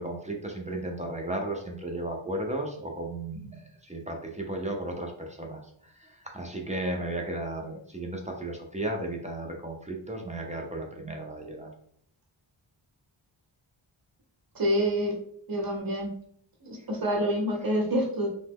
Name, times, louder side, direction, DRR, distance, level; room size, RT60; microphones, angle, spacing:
voice 1, 0.0-11.7 16.8-16.9, right 1 dB, 15° right, 1 dB, 0.4 m, -35 dB
voice 2, 14.5-15.1 15.5-16.1 16.6-18.3, equal, 45° right, 0 dB, 0.9 m, -27 dB
2.8 x 2.1 x 3.4 m, 0.65 s
wide cardioid pair, 115°, 49 cm